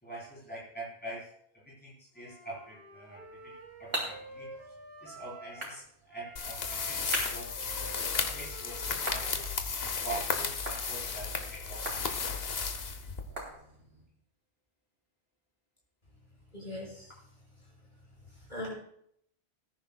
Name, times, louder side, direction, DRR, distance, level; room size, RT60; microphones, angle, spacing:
voice 1, 0.0-4.5 5.0-7.5 8.3-9.5 10.0-12.8, right 2 dB, 10° left, -7 dB, 4.2 m, -45 dB
Wind instrument woodwind instrument, 2.1-5.8 6.1-10.0, right 2 dB, 65° right, 2.1 m, -50 dB
sound 1, 3.2-14.1, right 1 dB, 80° right, 3.2 m, -43 dB
sound 2, 6.4-13.5, left 5 dB, 70° left, 1.2 m, -34 dB
voice 2, 16.5-17.3 17.6-17.7 18.2-18.7, left 1 dB, 45° left, -4 dB, 5.3 m, -42 dB
18.5 x 10.0 x 2.3 m, 0.70 s
omnidirectional pair, 1.1 m